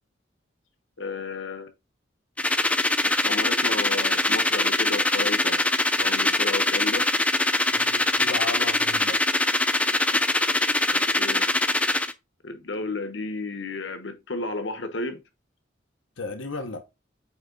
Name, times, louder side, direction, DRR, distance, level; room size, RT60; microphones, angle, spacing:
voice 1, 1.0-1.7 3.1-5.6 6.0-7.1 10.9-11.5 12.4-15.2, left 3 dB, 65° left, 1.2 m, -32 dB
sound 1, 2.4-12.1, left 2 dB, 5° left, 0.4 m, -23 dB
voice 2, 7.7-9.2 16.2-16.9, left 3 dB, 90° left, 1.0 m, -34 dB
8.7 x 3.4 x 4.0 m
head